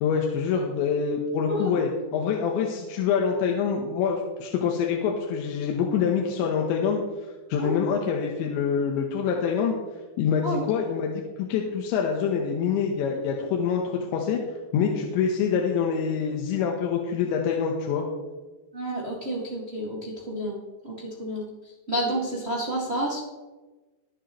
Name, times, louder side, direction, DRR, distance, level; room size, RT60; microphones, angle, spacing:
voice 1, 0.0-7.0 7.5-9.7 10.2-14.4 14.7-18.1, left 6 dB, 80° left, 1 dB, 3.4 m, -25 dB
voice 2, 18.7-20.6 20.8-20.9 21.2-21.4 21.9-23.2, right 1 dB, 45° right, -5 dB, 0.8 m, -29 dB
21.5 x 7.6 x 3.1 m, 1.2 s
omnidirectional pair, 5.2 m